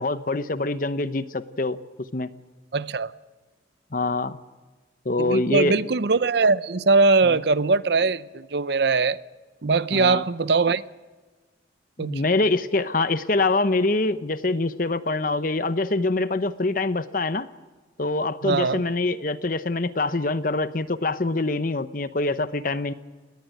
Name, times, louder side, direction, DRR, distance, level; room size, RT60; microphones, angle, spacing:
voice 1, 0.0-1.8 2.1-2.3 3.9-4.4 5.0-5.8 7.2-7.4 9.9-10.2 12.0-17.5 18.0-22.9, left 2 dB, 45° left, 0.9 m, -24 dB
voice 2, 2.7-3.1 5.2-9.2 9.6-10.8 12.0-12.2 18.4-18.8, right 4 dB, 60° right, 0.6 m, -21 dB
20.0 x 19.0 x 9.2 m
head